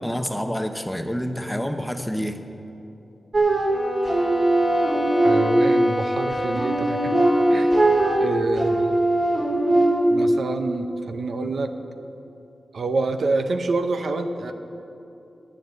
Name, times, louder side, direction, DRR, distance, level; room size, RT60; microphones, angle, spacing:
voice 1, 0.0-2.4, equal, 5° left, 6 dB, 0.7 m, -28 dB
sound 1, 3.3-5.9 6.3-10.3, right 1 dB, 50° right, 2.6 m, -20 dB
sound 2, 3.7-8.4, left 1 dB, 20° left, 1.2 m, -29 dB
voice 2, 5.2-7.2 7.5-7.7 8.2-8.9 10.1-11.7 12.7-14.5, right 3 dB, 70° right, 7 dB, 0.7 m, -27 dB
10.5 x 8.7 x 7.7 m, 2.9 s
wide cardioid pair, 110°, 0 cm